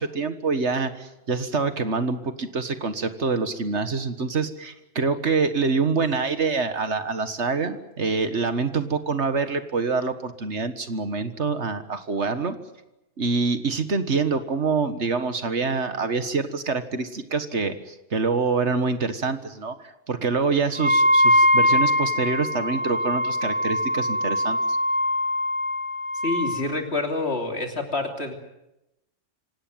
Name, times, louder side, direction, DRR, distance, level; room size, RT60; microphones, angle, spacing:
voice 1, 0.0-12.6 13.2-24.6, right 4 dB, 65° right, 10 dB, 1.8 m, -26 dB
Wind instrument woodwind instrument, 20.8-26.6, left 1 dB, 20° right, 1.8 m, -22 dB
voice 2, 26.2-28.3, left 2 dB, 55° left, 4 dB, 3.3 m, -27 dB
26.0 x 18.0 x 9.3 m, 0.92 s
omnidirectional pair, 1.3 m